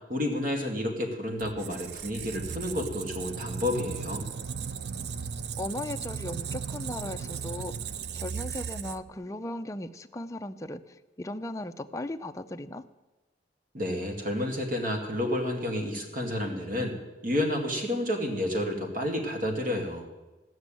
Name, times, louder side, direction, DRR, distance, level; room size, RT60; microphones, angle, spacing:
voice 1, 0.1-4.2 13.7-17.0 17.2-20.1, left 1 dB, 50° right, 2 dB, 2.3 m, -30 dB
Squeak, 1.4-9.2, right 6 dB, 65° right, 0.5 m, -36 dB
voice 2, 5.6-7.8 8.1-12.9, left 1 dB, 20° left, 7 dB, 0.5 m, -37 dB
15.5 x 6.2 x 9.0 m, 1.1 s
head